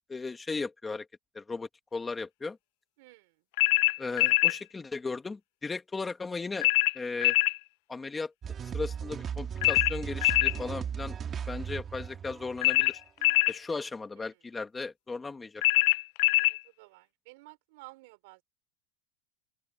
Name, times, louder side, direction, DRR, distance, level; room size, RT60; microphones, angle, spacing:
voice 1, 0.1-1.1 1.3-2.6 4.0-6.7 6.9-7.3 7.9-8.3 8.6-11.2 11.5-13.0 13.5-15.6, left 4 dB, 10° left, 1.7 m, -36 dB
voice 2, 3.0-3.4 14.2-14.4 16.3-18.4, right 24 dB, 60° right, 4.7 m, -54 dB
sound 1, 3.6-4.6 6.6-7.6 9.6-10.6 12.6-13.6 15.6-16.6, left 21 dB, 55° left, 0.4 m, -23 dB
sound 2, 8.4-13.4, right 7 dB, 20° right, 2.2 m, -37 dB
open air
supercardioid pair, 160°, 0 cm